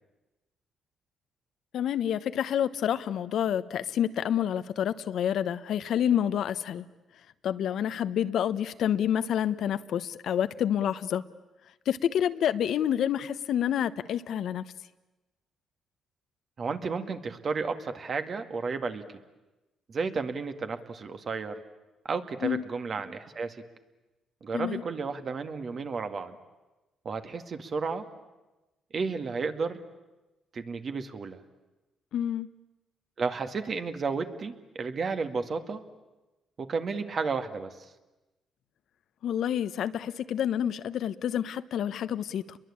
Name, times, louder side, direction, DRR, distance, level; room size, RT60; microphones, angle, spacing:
voice 1, 1.7-6.8 7.4-11.2 11.9-14.6 22.4-22.6 24.5-24.8 32.1-32.5 39.2-42.6, left 9 dB, 70° left, 13 dB, 1.0 m, -28 dB
voice 2, 16.6-19.0 19.9-21.6 22.0-23.6 24.4-26.4 27.0-28.1 28.9-29.8 30.5-31.4 33.2-35.8 36.6-37.8, right 4 dB, 45° right, 8 dB, 2.1 m, -32 dB
30.0 x 22.5 x 8.7 m, 1.1 s
cardioid pair, 90°, 0 cm